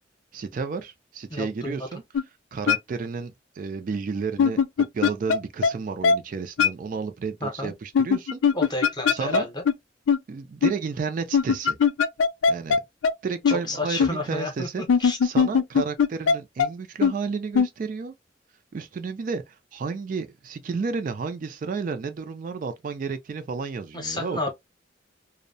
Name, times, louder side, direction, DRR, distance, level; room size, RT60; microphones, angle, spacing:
voice 1, 0.3-2.0 2.5-4.6 4.9-8.4 9.1-9.5 10.3-11.8 12.5-12.8 13.2-18.1 18.7-24.5, right 5 dB, 45° right, 0.3 m, -32 dB
voice 2, 1.3-1.9 7.4-7.7 8.5-9.6 13.5-14.7 15.0-15.2 23.9-24.5, left 2 dB, 25° left, 0.7 m, -31 dB
sound 1, 2.1-2.2 2.7-2.8 4.4-5.4 5.6-5.7 6.0-6.2 6.6-6.7 7.9-9.4 9.6-9.7 10.1-10.2 10.6-10.7 11.3-12.8 13.0-13.1 13.4-13.5 14.0-14.1 14.9-16.3 16.6-16.7 17.0-17.1 17.5-17.7, left 6 dB, 90° left, 0.3 m, -19 dB
2.6 x 2.0 x 2.5 m
head